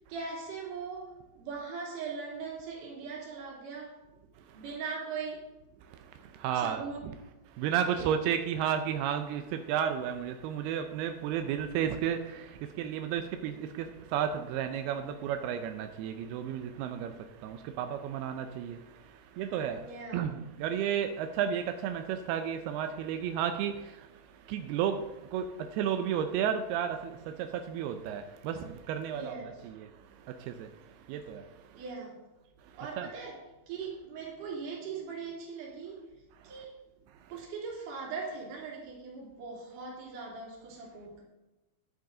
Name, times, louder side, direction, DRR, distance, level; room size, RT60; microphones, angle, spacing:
voice 1, 0.0-4.0 4.5-5.5 6.6-7.1 8.0-8.1 19.8-20.3 29.1-29.6 31.7-32.2 32.8-33.4 33.7-36.0 36.4-36.7 37.3-41.2, right 5 dB, 60° right, 4.0 m, -40 dB
voice 2, 5.9-7.1 7.5-29.4 29.6-31.8 32.6-33.1 36.4-36.6 37.1-37.3, right 8 dB, 90° right, 2.7 m, -33 dB
10.5 x 10.5 x 3.8 m
omnidirectional pair, 4.5 m